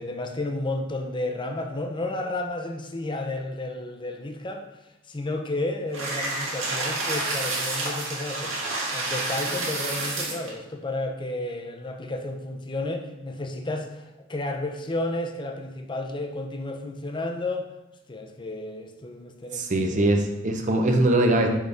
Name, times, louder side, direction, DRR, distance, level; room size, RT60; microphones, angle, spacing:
voice 1, 0.0-4.6 5.1-8.6 8.9-17.7 18.1-20.1, left 2 dB, 25° left, 4 dB, 0.6 m, -32 dB
sound 1, 5.9-10.5, right 2 dB, 75° right, 1.8 m, -29 dB
voice 2, 19.5-21.5, right 1 dB, 40° right, 4 dB, 0.7 m, -22 dB
6.4 x 5.1 x 3.5 m, 0.98 s
head